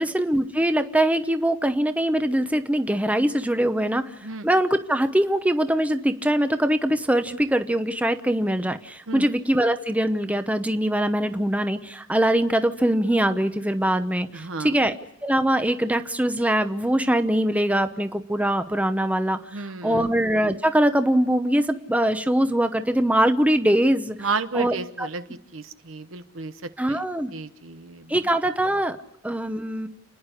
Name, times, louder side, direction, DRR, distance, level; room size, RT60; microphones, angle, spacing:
voice 1, 0.0-4.1 4.4-14.9 15.2-19.4 19.8-24.2 24.5-25.1 26.8-27.3 28.1-29.0 29.2-29.9, right 1 dB, 5° right, 9 dB, 0.9 m, -22 dB
voice 2, 14.3-14.8 19.5-20.1 24.2-27.0 27.3-28.2, right 4 dB, 80° right, 10 dB, 1.0 m, -33 dB
30.0 x 10.5 x 9.8 m, 0.77 s
head